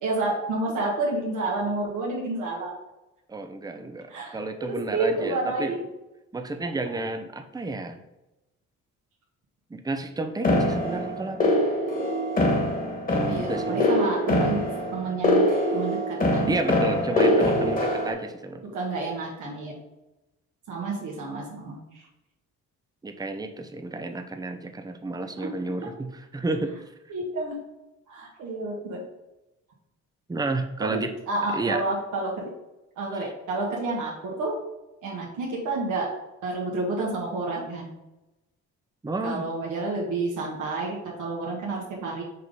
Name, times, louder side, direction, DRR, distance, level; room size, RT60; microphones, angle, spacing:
voice 1, 0.0-2.7 4.1-4.3 4.6-5.8 13.3-15.4 15.7-16.5 18.7-19.7 20.7-22.1 25.4-25.5 27.1-27.6 28.1-29.0 30.8-31.0 31.3-32.5 33.0-34.5 35.0-36.1 36.4-37.9 39.2-42.2, right 2 dB, 80° right, -2 dB, 1.7 m, -29 dB
voice 2, 3.3-5.8 6.3-8.0 9.7-11.6 13.1-13.9 16.5-18.7 23.0-26.7 30.3-31.1 31.5-31.8 33.1-33.3 39.0-39.5, right 2 dB, 15° right, 6 dB, 0.7 m, -31 dB
sound 1, 10.4-18.1, left 1 dB, 30° left, 1.8 m, -24 dB
5.6 x 3.8 x 5.3 m, 0.97 s
cardioid pair, 90°, 30 cm